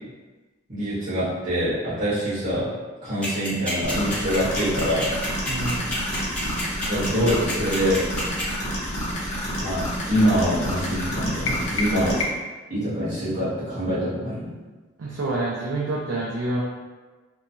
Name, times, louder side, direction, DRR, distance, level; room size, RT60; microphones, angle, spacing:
voice 1, 0.7-2.7 3.0-5.1 6.9-8.0 9.6-12.2 12.7-14.5, equal, 40° right, -14 dB, 1.4 m, -25 dB
sound 1, 3.2-8.4, left 1 dB, 5° left, 0.7 m, -30 dB
sound 2, 3.8-12.2, equal, 35° left, 0.8 m, -29 dB
voice 2, 5.5-5.9 15.0-16.6, right 2 dB, 70° right, -4 dB, 0.4 m, -27 dB
sound 3, 11.5-12.7, left 2 dB, 75° left, 0.3 m, -29 dB
2.9 x 2.2 x 2.7 m, 1.3 s
head